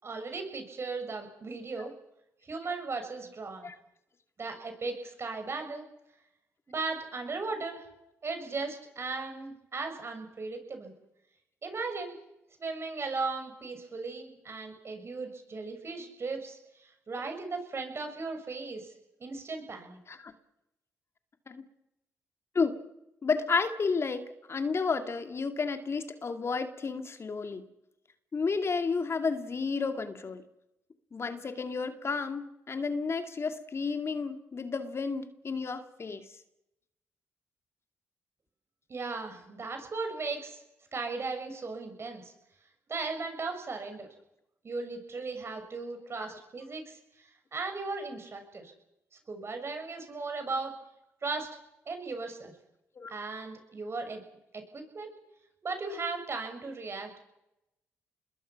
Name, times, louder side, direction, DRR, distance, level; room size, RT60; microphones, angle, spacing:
voice 1, 0.0-1.9 2.4-3.7 4.4-5.9 6.7-7.8 8.2-10.9 11.6-12.2 12.6-18.9 19.2-20.0 38.9-40.6 40.9-42.3 42.9-44.1 44.6-48.7 49.3-50.7 51.2-51.5 51.8-52.5 53.1-54.2 54.5-55.1 55.6-57.1, right 3 dB, 45° right, 6 dB, 6.5 m, -37 dB
voice 2, 23.2-24.2 24.5-27.6 28.3-30.4 31.1-36.3 46.3-46.4 53.0-53.1, left 4 dB, 45° left, 7 dB, 2.4 m, -31 dB
26.5 x 21.5 x 6.0 m, 0.86 s
hypercardioid pair, 50°, 6 cm